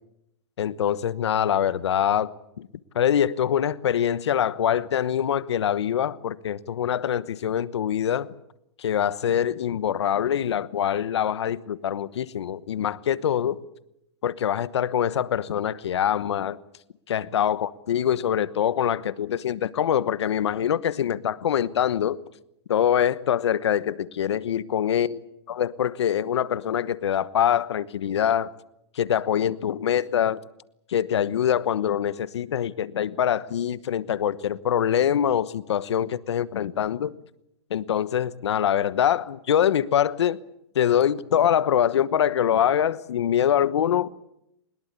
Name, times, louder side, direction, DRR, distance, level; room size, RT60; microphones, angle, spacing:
voice 1, 0.6-2.7 2.9-8.3 8.8-13.6 14.2-16.6 17.1-22.2 22.7-25.2 25.5-28.5 28.9-30.4 30.9-37.1 37.7-40.4 40.7-44.1, left 9 dB, 85° left, 1.1 m, -24 dB
22.0 x 20.5 x 8.3 m
hypercardioid pair, 135°, 14 cm